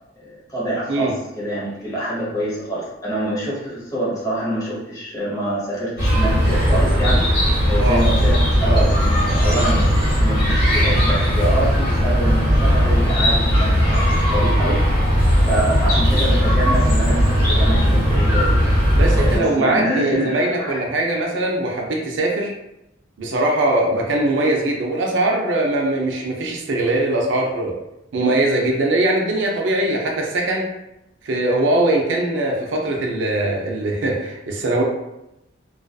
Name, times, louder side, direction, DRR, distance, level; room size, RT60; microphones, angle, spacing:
voice 1, 0.2-7.3 7.7-9.9 10.2-14.0 14.3-14.9 15.4-18.6 19.1-20.8, right 1 dB, 20° left, -7 dB, 0.8 m, -26 dB
Chirp tweet, 6.0-19.4, equal, 50° left, 1.0 m, -17 dB
voice 2, 19.0-22.5 23.2-27.8 28.1-30.7 31.2-34.8, right 1 dB, 70° right, 0 dB, 0.4 m, -21 dB
2.4 x 2.3 x 2.2 m, 0.89 s
head